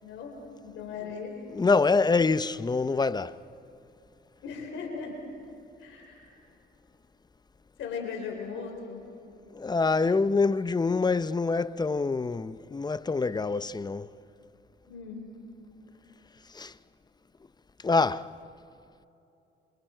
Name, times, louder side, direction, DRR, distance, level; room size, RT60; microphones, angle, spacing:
voice 1, 0.0-1.4 4.4-5.2 5.8-6.4 7.8-9.0 14.9-15.3, left 5 dB, 80° left, 4.3 m, -38 dB
voice 2, 1.5-3.4 9.5-14.1 16.5-16.7 17.8-18.3, left 4 dB, 20° left, 0.6 m, -25 dB
29.5 x 27.0 x 4.5 m
cardioid pair, 90°, 20 cm